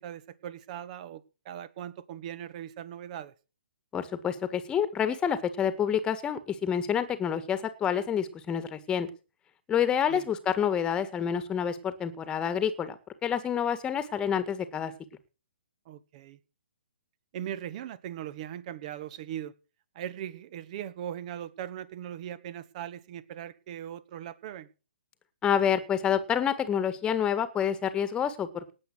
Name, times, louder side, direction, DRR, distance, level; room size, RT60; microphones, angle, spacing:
voice 1, 0.0-3.3 10.1-10.3 15.8-16.4 17.3-19.5 19.9-24.7, right 10 dB, 40° right, 17 dB, 1.6 m, -39 dB
voice 2, 3.9-9.1 9.7-14.9 25.4-28.6, left 8 dB, 15° left, 13 dB, 1.8 m, -28 dB
18.5 x 7.9 x 6.4 m, 0.34 s
figure-of-eight pair, 130°, 6 cm